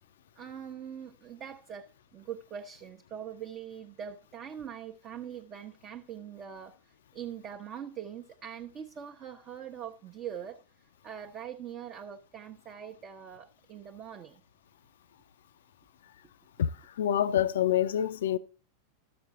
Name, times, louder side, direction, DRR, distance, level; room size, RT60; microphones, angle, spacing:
voice 1, 0.4-6.8 7.1-10.6 11.0-14.4, right 8 dB, 30° right, 0.8 m, -42 dB
voice 2, 16.6-18.4, left 10 dB, 60° left, 0.5 m, -27 dB
13.5 x 6.8 x 3.8 m
figure-of-eight pair, 90°, 0 cm